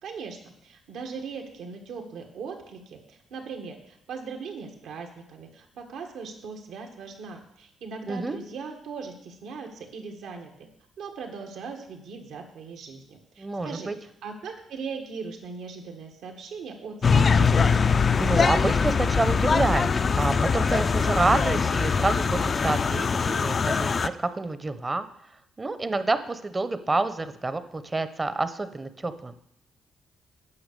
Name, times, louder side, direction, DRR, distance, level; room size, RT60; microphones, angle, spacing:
voice 1, 0.0-10.5 11.0-17.8, right 5 dB, 80° right, 3 dB, 1.6 m, -39 dB
voice 2, 8.1-8.4 13.4-13.9 18.2-25.1 25.6-29.3, right 3 dB, 25° right, 11 dB, 0.8 m, -28 dB
sound 1, 17.0-24.1, left 5 dB, 40° left, 0.4 m, -22 dB
9.6 x 5.9 x 6.7 m, 0.75 s
cardioid pair, 90°, 0 cm